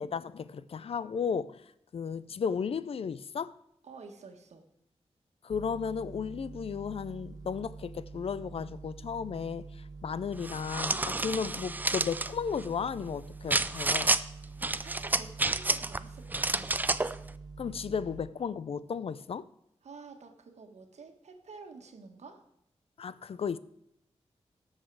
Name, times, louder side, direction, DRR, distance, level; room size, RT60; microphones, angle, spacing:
voice 1, 0.0-3.6 5.4-14.1 17.6-19.5 23.0-23.6, left 6 dB, 60° left, 0.4 m, -34 dB
voice 2, 3.8-4.7 14.3-16.8 19.8-22.5, right 4 dB, 85° right, 1.4 m, -50 dB
sound 1, 5.5-18.2, right 4 dB, 35° right, 0.9 m, -46 dB
sound 2, 10.4-12.3 13.5-14.2 14.6-16.0 16.3-17.1, right 2 dB, 15° right, 0.3 m, -29 dB
18.0 x 6.6 x 4.7 m
wide cardioid pair, 145°, 11 cm